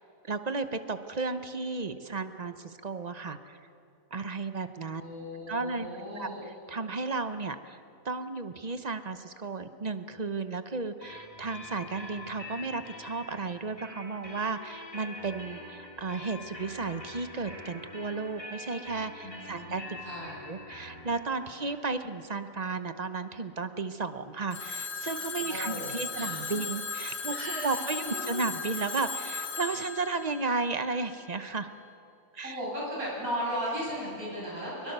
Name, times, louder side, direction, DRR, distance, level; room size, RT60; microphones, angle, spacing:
voice 1, 0.2-3.6 4.1-5.0 5.5-5.9 6.2-6.3 6.7-7.8 8.0-20.0 20.5-31.7 32.3-32.6, right 4 dB, 35° right, 10 dB, 0.9 m, -34 dB
voice 2, 5.0-6.5 19.2-20.4 25.5-26.6 27.3-28.5 32.4-34.9, equal, 90° right, -6 dB, 8.6 m, -37 dB
sound 1, 11.0-24.6, left 2 dB, 25° left, 2.5 m, -46 dB
Telephone, 24.5-31.3, left 5 dB, 65° left, 2.1 m, -37 dB
22.5 x 22.0 x 6.8 m, 2.7 s
omnidirectional pair, 1.5 m